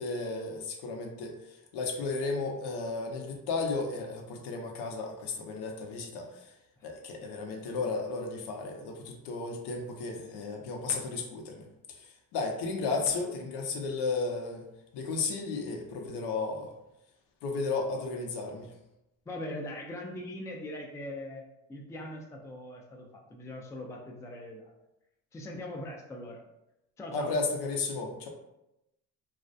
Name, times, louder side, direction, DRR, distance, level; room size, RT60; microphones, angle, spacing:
voice 1, 0.0-6.5 6.8-12.1 12.3-14.6 14.9-16.7 17.4-18.7 27.1-28.3, left 3 dB, 80° left, 2 dB, 0.6 m, -34 dB
voice 2, 19.3-21.4 21.7-24.7 25.3-26.4 27.0-27.3, left 1 dB, 10° left, 0 dB, 0.3 m, -41 dB
2.3 x 2.1 x 2.5 m, 0.88 s
cardioid pair, 90°, 39 cm